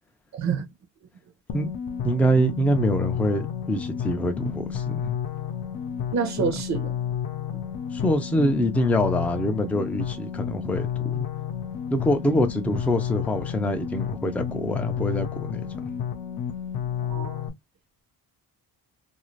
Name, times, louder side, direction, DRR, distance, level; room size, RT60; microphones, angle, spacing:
voice 1, 0.3-0.7 6.1-6.9 7.5-7.6 17.0-17.4, right 6 dB, 45° right, 0.7 m, -28 dB
sound 1, 1.5-17.5, left 9 dB, 65° left, 0.6 m, -31 dB
voice 2, 2.0-5.1 7.9-11.2 11.9-15.7, equal, 5° left, 0.3 m, -25 dB
2.5 x 2.3 x 3.1 m
cardioid pair, 170°, 37 cm